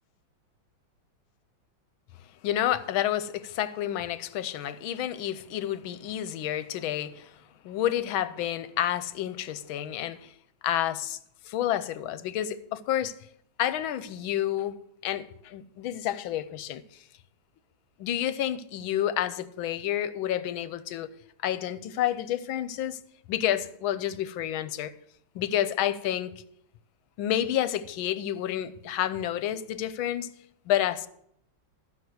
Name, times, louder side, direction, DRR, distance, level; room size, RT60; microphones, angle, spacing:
voice 1, 2.4-7.3 7.6-10.3 10.6-11.2 11.4-13.1 13.6-14.8 15.0-17.0 18.0-21.1 21.4-23.0 23.3-24.9 25.3-26.3 27.2-30.3 30.7-31.1, left 11 dB, 85° left, 1.5 m, -29 dB
12.5 x 5.9 x 7.7 m
omnidirectional pair, 2.2 m